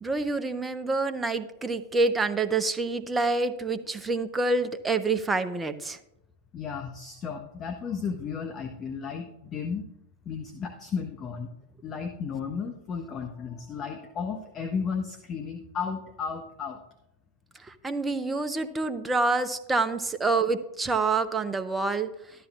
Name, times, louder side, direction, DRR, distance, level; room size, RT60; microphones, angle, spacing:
voice 1, 0.0-6.0 17.6-22.1, right 3 dB, 15° right, 10 dB, 0.8 m, -27 dB
voice 2, 6.5-9.9 10.2-11.5 11.8-16.8, left 6 dB, 30° left, 5 dB, 1.0 m, -34 dB
13.0 x 12.0 x 2.5 m, 0.84 s
figure-of-eight pair, 90°, 0 cm